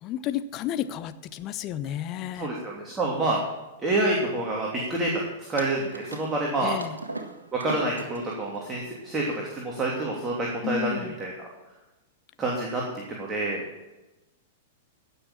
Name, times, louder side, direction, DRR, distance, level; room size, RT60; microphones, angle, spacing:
voice 1, 0.0-2.5 6.6-7.0 10.6-11.2, left 11 dB, 35° left, 12 dB, 0.8 m, -32 dB
voice 2, 2.4-3.4 3.8-5.1 5.5-6.8 7.5-11.5 12.4-13.6, right 2 dB, 20° right, -3 dB, 2.9 m, -28 dB
sound 1, 5.6-10.7, right 2 dB, 85° right, 1.5 m, -40 dB
16.5 x 6.9 x 7.4 m, 1.1 s
figure-of-eight pair, 100°, 0 cm